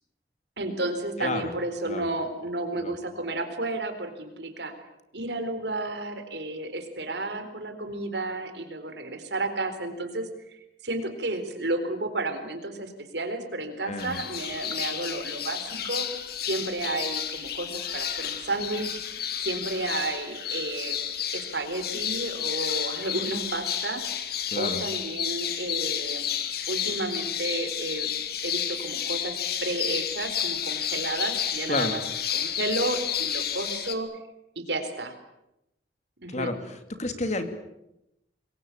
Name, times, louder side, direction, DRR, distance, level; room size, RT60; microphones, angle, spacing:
voice 1, 0.6-4.7 5.1-10.6 10.8-16.1 16.5-19.0 19.4-21.0 21.3-24.0 24.6-26.3 26.7-28.1 28.4-32.0 32.3-34.1 34.6-35.1 36.2-36.5, right 2 dB, 70° right, 8 dB, 4.1 m, -32 dB
voice 2, 1.2-1.5 1.9-2.1 2.8-2.9 13.8-14.2 24.5-24.8 31.7-31.9 36.3-37.4, left 2 dB, 40° left, 9 dB, 2.6 m, -30 dB
sound 1, 14.0-33.9, left 9 dB, 60° left, 2.5 m, -31 dB
26.0 x 22.0 x 8.5 m, 0.86 s
head